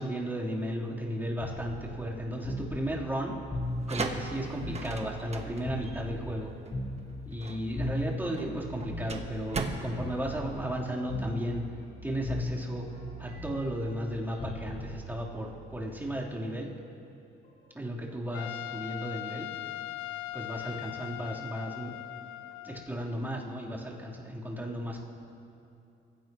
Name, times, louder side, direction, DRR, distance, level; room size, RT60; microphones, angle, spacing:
voice 1, 0.0-3.3 3.9-6.5 7.3-11.6 12.0-12.9 13.2-16.7 17.7-19.5 20.3-21.9 22.6-25.0, equal, 10° right, -6 dB, 3.7 m, -34 dB
sound 1, 1.4-5.4 5.6-9.7 10.0-10.8 11.1-12.0 12.2-16.2 17.4-17.7, left 1 dB, 45° left, 5.0 m, -38 dB
sound 2, 3.6-11.2, right 4 dB, 35° right, 1.3 m, -39 dB
Trumpet, 18.3-22.9, left 15 dB, 85° left, 0.5 m, -40 dB
24.5 x 16.5 x 3.1 m, 2.6 s
cardioid pair, 90°, 20 cm